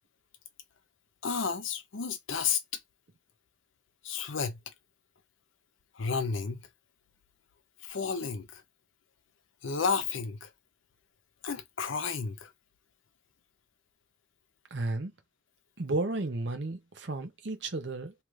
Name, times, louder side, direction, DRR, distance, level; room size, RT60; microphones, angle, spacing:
voice 1, 1.2-2.6 4.0-4.6 5.9-6.6 7.8-8.6 9.6-10.5 11.4-12.5, left 5 dB, 75° left, 0.6 m, -31 dB
voice 2, 14.7-15.1 15.8-18.1, right 2 dB, 60° right, 0.8 m, -33 dB
2.9 x 2.4 x 3.1 m
head